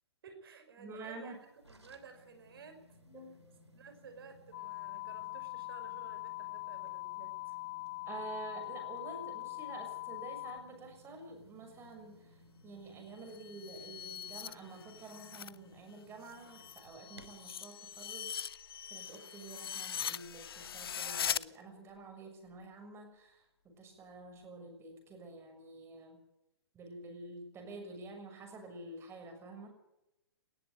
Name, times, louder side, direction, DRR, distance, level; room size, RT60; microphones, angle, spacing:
voice 1, 0.2-3.0 3.5-7.5, right 5 dB, 60° right, 7 dB, 5.3 m, -54 dB
voice 2, 0.8-1.4 3.1-3.3 8.1-12.4 12.6-18.3 18.9-26.2 26.7-29.7, right 3 dB, 20° right, 4 dB, 6.5 m, -49 dB
sound 1, 1.3-17.6, left 1 dB, 90° right, 3.2 m, -61 dB
sound 2, 4.5-10.6, left 23 dB, 40° left, 3.6 m, -42 dB
sound 3, 13.2-15.6 15.9-21.4, left 8 dB, 60° left, 0.7 m, -41 dB
19.5 x 14.5 x 9.2 m, 0.90 s
figure-of-eight pair, 125°, 14 cm